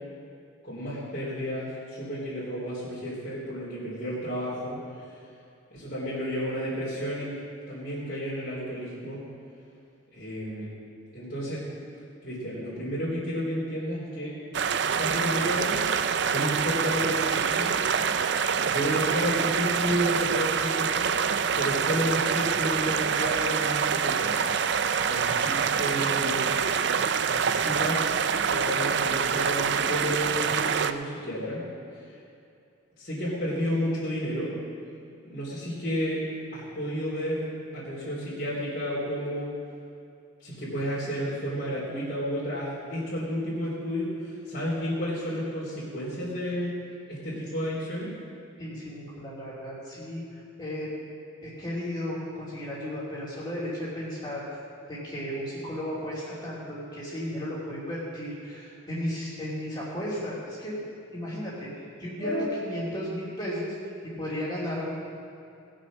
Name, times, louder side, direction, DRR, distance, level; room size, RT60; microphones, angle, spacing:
voice 1, 0.6-5.1 5.7-7.3 7.7-9.2 10.1-10.7 11.1-11.7 12.2-14.3 15.0-15.8 16.3-17.7 18.6-21.3 21.5-24.4 24.8-26.5 27.2-28.1 28.5-31.6 31.9-32.2 33.0-34.5 35.2-36.2 36.5-37.4 37.7-39.5 40.4-46.8 47.1-48.1 62.2-62.5, equal, 45° left, -10 dB, 3.2 m, -31 dB
sound 1, 14.5-30.9, right 6 dB, 55° right, 0.4 m, -26 dB
voice 2, 48.6-50.9 51.4-54.4 54.9-60.8 61.1-63.8 64.0-64.9, equal, 20° left, -8 dB, 2.9 m, -34 dB
19.0 x 6.4 x 6.2 m, 2.5 s
head